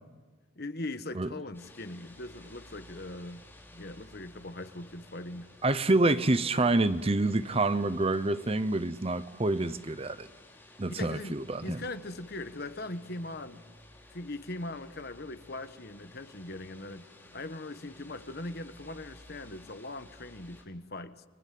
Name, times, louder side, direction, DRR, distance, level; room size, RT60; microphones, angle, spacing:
voice 1, 0.6-3.4 3.7-5.5 10.9-11.4 11.6-13.6 14.1-21.2, left 2 dB, 50° left, 1.4 m, -40 dB
sound 1, 1.5-20.6, left 1 dB, 10° left, 5.9 m, -55 dB
voice 2, 5.6-10.3 10.8-11.8, right 2 dB, 30° right, 0.8 m, -27 dB
30.0 x 24.5 x 7.7 m
head